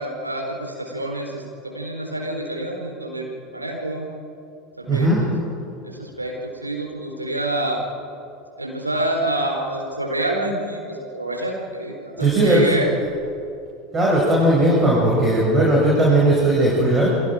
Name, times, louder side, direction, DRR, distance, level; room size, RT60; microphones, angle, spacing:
voice 1, 0.0-4.1 4.8-5.3 5.8-7.8 8.6-12.9, right 1 dB, 85° right, 0 dB, 4.2 m, -27 dB
voice 2, 4.9-5.2 12.2-12.7 13.9-17.1, right 1 dB, 25° right, -5 dB, 6.7 m, -17 dB
29.0 x 23.5 x 5.0 m, 2.6 s
figure-of-eight pair, 80°, 0 cm